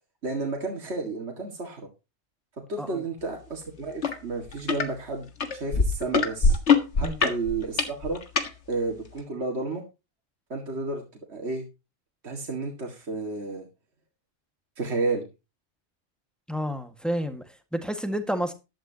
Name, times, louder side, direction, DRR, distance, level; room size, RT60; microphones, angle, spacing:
voice 1, 0.2-1.9 2.7-6.6 7.0-8.2 8.7-9.8 10.5-11.0 11.3-11.6 12.2-13.7 14.8-15.3, right 3 dB, 65° right, 2.4 m, -31 dB
sound 1, 4.0-4.2 4.5-4.9 5.4-8.5 9.2-9.3, left 4 dB, 70° left, 1.9 m, -22 dB
voice 2, 16.5-18.5, equal, ahead, 1.7 m, -30 dB
14.5 x 11.5 x 2.9 m
omnidirectional pair, 1.2 m